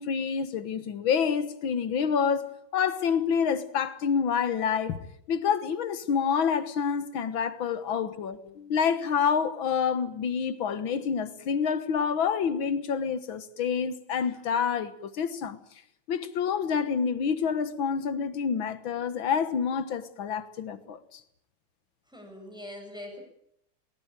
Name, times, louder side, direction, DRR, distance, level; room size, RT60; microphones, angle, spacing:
voice 1, 0.0-5.0 5.3-15.6 16.1-21.2, left 6 dB, 90° left, 2.2 m, -28 dB
voice 2, 22.1-23.2, left 1 dB, ahead, 7.8 m, -42 dB
22.5 x 19.0 x 9.0 m
omnidirectional pair, 2.1 m